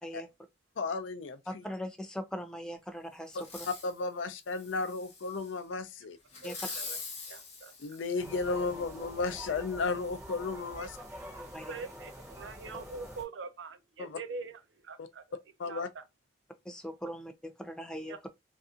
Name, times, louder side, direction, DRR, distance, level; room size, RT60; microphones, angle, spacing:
voice 1, 0.8-1.6 3.3-3.4 3.8-6.2 7.8-10.9 14.0-14.2 15.0-15.1 15.6-15.9, left 4 dB, 80° left, 0.4 m, -34 dB
voice 2, 1.5-3.7 6.4-6.5 11.5-11.7 16.7-18.2, equal, 5° left, 0.3 m, -40 dB
Fireworks, 3.3-4.0 4.5-5.5 6.3-8.7 9.3-9.4, left 4 dB, 35° left, 0.7 m, -44 dB
voice 3, 6.4-7.0 7.3-7.7 10.8-10.9 11.4-15.4 15.7-16.0 18.1-18.2, right 4 dB, 75° right, 0.5 m, -44 dB
sound 1, 8.2-13.2, equal, 15° right, 0.8 m, -46 dB
2.6 x 2.4 x 2.4 m
head